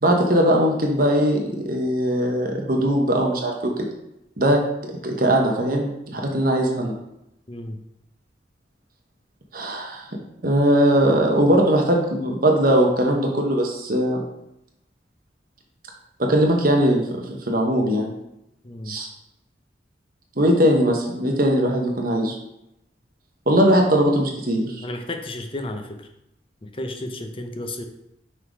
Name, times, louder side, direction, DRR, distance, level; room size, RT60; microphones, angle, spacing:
voice 1, 0.0-3.7 4.4-4.6 5.0-6.9 9.5-10.1 10.4-14.2 16.2-18.1 18.9-19.1 20.4-22.4 23.5-24.8, equal, 55° right, 1 dB, 1.2 m, -20 dB
voice 2, 7.5-7.8 18.6-19.0 24.8-26.1 26.6-27.8, left 1 dB, 30° left, 5 dB, 0.7 m, -32 dB
5.9 x 4.0 x 4.7 m, 0.83 s
head